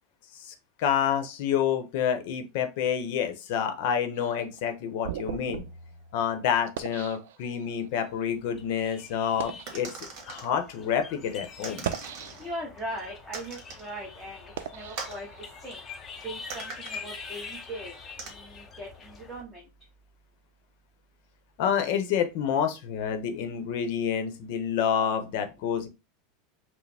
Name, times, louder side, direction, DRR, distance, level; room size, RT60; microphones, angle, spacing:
voice 1, 0.3-5.6 6.1-9.9 10.3-11.9 21.6-25.9, left 8 dB, 60° left, 7 dB, 0.7 m, -28 dB
sound 1, 4.2-7.9 8.6-8.7 9.2-9.8 10.6-10.7 11.6-12.7 13.3-15.8, right 9 dB, 85° right, 0.4 m, -39 dB
sound 2, 8.3-19.4, left 5 dB, 25° left, 0.6 m, -45 dB
sound 3, 9.7-10.5 11.6-12.5 13.3-13.9 15.0-15.2 16.5-17.0 18.2-18.3, right 4 dB, 45° right, 1.6 m, -40 dB
voice 2, 12.4-15.3 15.6-15.8 16.2-17.9 18.3-19.6, right 1 dB, 5° right, -4 dB, 0.9 m, -39 dB
4.8 x 2.0 x 3.3 m, 0.27 s
supercardioid pair, 155°, 0 cm